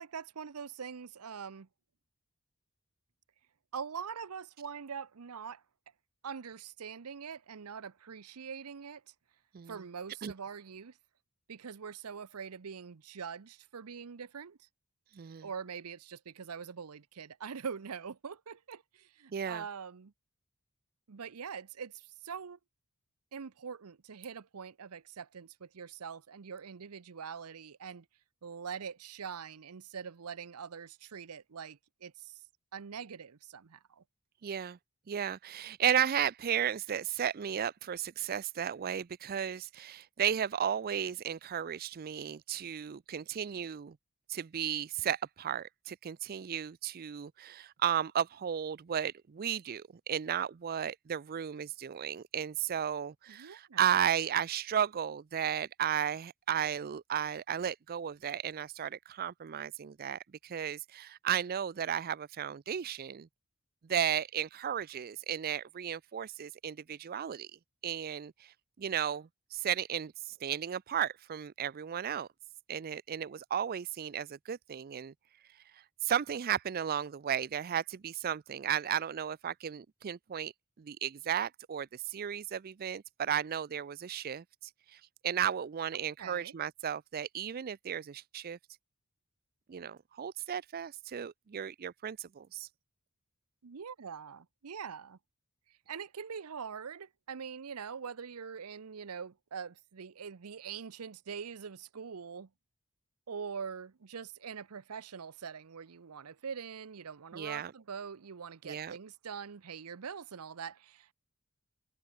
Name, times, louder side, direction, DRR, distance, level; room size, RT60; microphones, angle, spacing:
voice 1, 0.0-1.7 3.7-5.6 6.2-9.0 9.7-11.0 11.5-14.7 15.4-20.1 21.1-22.6 23.3-28.1 28.4-32.4 32.7-34.0 53.3-53.9 85.9-86.5 93.6-95.2 95.9-102.5 103.3-111.1, right 6 dB, 80° right, 0.7 m, -43 dB
voice 2, 15.1-15.5 19.3-19.6 34.4-34.8 35.1-44.0 44.3-63.3 63.8-67.5 67.8-72.3 72.7-75.1 76.0-80.5 80.8-84.4 84.9-88.6 89.7-92.7 107.3-107.7 108.6-109.0, right 9 dB, 45° right, 0.4 m, -34 dB
head